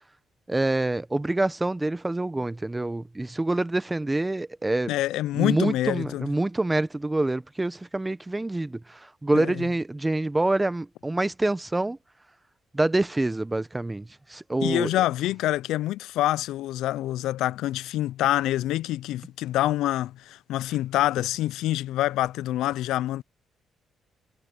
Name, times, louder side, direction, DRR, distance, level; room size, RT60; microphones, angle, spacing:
voice 1, 0.5-4.9 5.3-12.0 12.7-14.9, right 2 dB, 15° right, 0.8 m, -26 dB
voice 2, 4.9-6.3 9.3-9.6 14.6-23.2, left 14 dB, 90° left, 0.3 m, -26 dB
cardioid pair, 90°, 0 cm